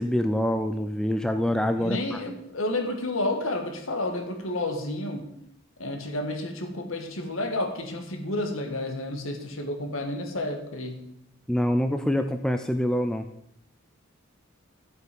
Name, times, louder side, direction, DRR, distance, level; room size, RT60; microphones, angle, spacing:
voice 1, 0.0-2.2 11.5-13.2, equal, 5° left, 7 dB, 0.4 m, -25 dB
voice 2, 1.7-5.3 5.8-11.0, left 1 dB, 70° left, 5 dB, 1.8 m, -30 dB
12.0 x 7.8 x 5.3 m, 0.76 s
head